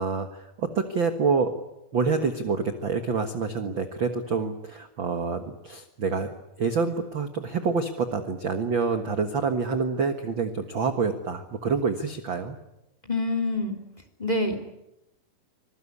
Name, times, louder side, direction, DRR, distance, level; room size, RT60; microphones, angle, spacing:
voice 1, 0.0-1.5 1.9-6.3 6.6-12.6, right 5 dB, 50° right, 7 dB, 1.6 m, -27 dB
voice 2, 13.0-13.8 14.2-14.6, left 2 dB, 10° left, 7 dB, 2.9 m, -26 dB
25.5 x 22.0 x 9.8 m, 0.90 s
omnidirectional pair, 4.2 m